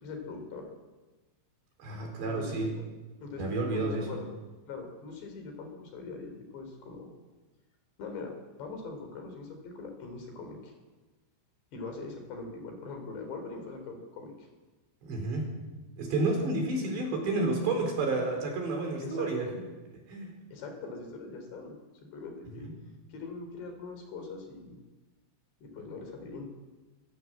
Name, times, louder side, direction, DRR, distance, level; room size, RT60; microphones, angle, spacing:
voice 1, 0.0-0.7 2.3-2.7 3.2-4.3 4.7-7.1 8.0-10.7 11.7-14.5 19.0-19.3 20.5-21.8 22.1-22.7 23.1-24.8 25.6-26.5, left 4 dB, 60° left, 5 dB, 5.5 m, -42 dB
voice 2, 1.8-2.7 3.4-4.2 15.0-15.5 16.0-19.5 20.1-20.3 22.6-22.7, right 2 dB, 60° right, 2 dB, 6.3 m, -30 dB
24.5 x 16.5 x 7.7 m, 1.2 s
omnidirectional pair, 5.9 m